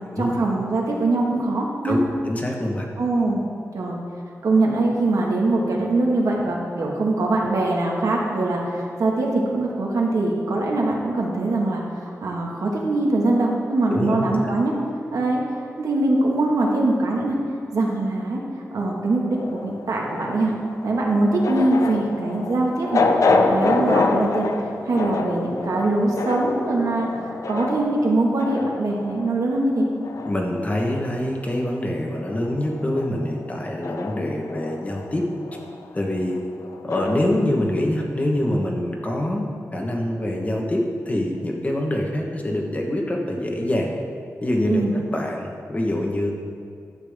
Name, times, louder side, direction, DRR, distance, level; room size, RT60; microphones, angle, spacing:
voice 1, 0.0-2.0 3.0-3.5 3.7-4.0 4.4-14.7 15.1-15.4 15.8-17.4 17.7-18.4 18.7-20.5 20.8-23.0 23.4-24.5 24.9-29.9 44.6-44.9, right 2 dB, 85° right, -2 dB, 1.6 m, -22 dB
voice 2, 2.3-2.8 13.9-14.5 30.2-35.2 35.9-36.4 36.8-39.4 39.7-40.8 41.0-43.9 44.4-44.8 45.1-46.3, left 1 dB, 25° left, 0 dB, 1.3 m, -25 dB
sound 1, 19.3-31.9 32.2-37.5, left 3 dB, 75° left, 0.6 m, -27 dB
12.5 x 8.4 x 3.6 m, 2.5 s
wide cardioid pair, 115°, 6 cm